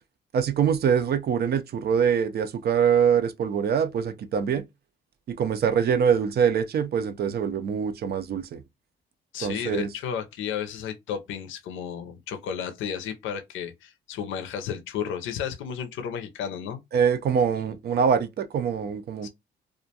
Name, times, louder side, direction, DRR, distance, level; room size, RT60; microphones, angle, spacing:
voice 1, 0.3-4.6 5.3-8.6 9.4-9.9 16.9-19.3, right 7 dB, 55° right, 0.4 m, -24 dB
voice 2, 9.3-16.8 19.2-19.3, left 8 dB, 80° left, 0.5 m, -33 dB
2.4 x 2.1 x 2.7 m
cardioid pair, 90°, 20 cm